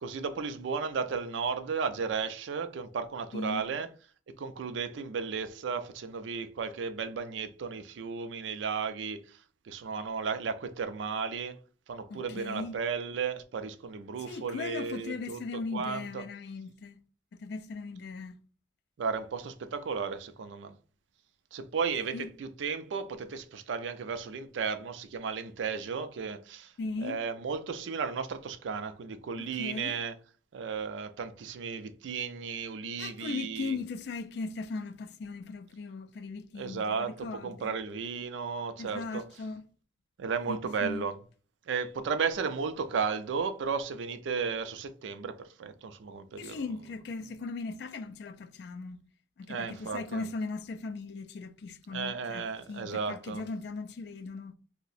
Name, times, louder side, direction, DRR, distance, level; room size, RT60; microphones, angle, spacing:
voice 1, 0.0-3.9 4.4-9.2 9.7-11.6 11.9-15.4 15.7-16.2 19.0-20.7 21.5-26.7 27.0-30.1 30.5-33.8 36.6-39.2 40.2-41.1 41.7-46.6 49.5-50.2 51.9-53.4, right 5 dB, 85° right, 0.4 m, -34 dB
voice 2, 3.3-3.7 12.1-12.8 14.2-17.0 17.3-18.4 22.1-22.3 26.8-27.2 29.4-30.0 33.0-37.7 38.8-39.6 40.5-41.0 46.4-49.0 49.4-54.6, left 3 dB, 60° left, 0.3 m, -38 dB
2.7 x 2.1 x 4.0 m
head